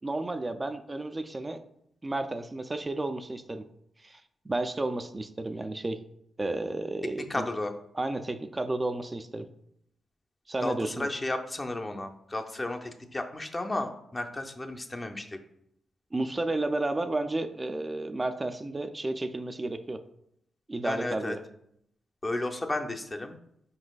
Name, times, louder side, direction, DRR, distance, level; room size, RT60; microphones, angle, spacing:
voice 1, 0.0-1.6 2.0-3.6 4.0-4.2 4.5-6.0 6.4-7.5 7.9-9.5 10.5-11.1 16.1-20.0 20.7-21.4, right 2 dB, 30° right, 9 dB, 0.3 m, -32 dB
voice 2, 7.3-7.7 10.6-15.4 20.8-21.4 22.2-23.4, left 2 dB, 30° left, 5 dB, 0.6 m, -33 dB
4.5 x 4.0 x 2.3 m, 0.74 s
supercardioid pair, 45°, 0 cm